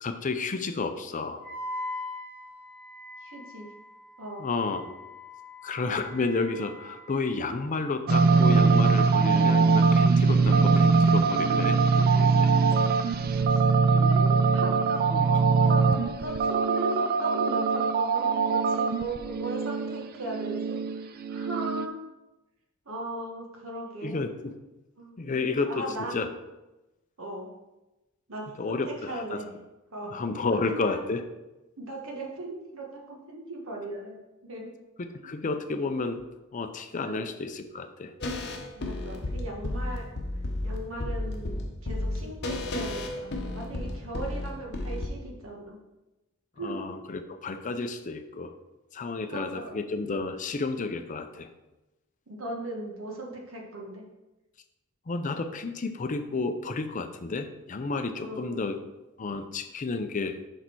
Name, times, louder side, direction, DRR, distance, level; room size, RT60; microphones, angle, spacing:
voice 1, 0.0-1.4 4.4-4.9 5.6-12.5 15.1-15.4 24.0-24.5 25.2-26.3 28.6-29.4 30.1-31.2 35.0-36.2 36.5-38.1 46.6-48.5 48.9-51.5 55.1-58.8 59.2-60.4, left 3 dB, 40° left, 8 dB, 0.5 m, -31 dB
Wind instrument woodwind instrument, 1.4-7.5, left 2 dB, 5° left, 1.3 m, -42 dB
voice 2, 3.2-3.7 4.2-4.4 13.5-13.6 13.9-22.0 22.8-24.2 25.0-26.3 27.2-27.5 28.3-29.5 29.9-30.2 30.5-31.1 31.8-34.2 34.4-34.8 35.2-35.3 37.0-37.3 38.7-40.1 40.6-45.8 46.5-46.8 49.3-49.8 52.3-54.0 58.2-58.8, right 1 dB, 75° right, -1 dB, 1.6 m, -38 dB
sound 1, 8.1-21.9, right 4 dB, 45° right, 0.4 m, -22 dB
sound 2, 38.2-45.1, left 1 dB, 55° left, 0.9 m, -33 dB
6.4 x 5.5 x 4.6 m, 1.0 s
head